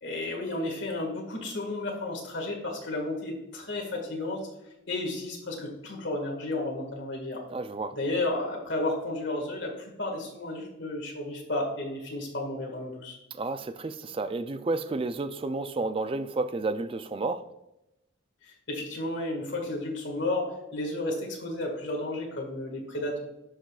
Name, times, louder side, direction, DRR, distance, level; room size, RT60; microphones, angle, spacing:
voice 1, 0.0-4.5 4.9-7.4 7.9-13.2 18.4-23.2, left 2 dB, 65° left, 1.9 m, -32 dB
voice 2, 7.5-8.0 13.3-17.4, right 3 dB, 30° right, 0.4 m, -31 dB
11.5 x 5.1 x 2.4 m
head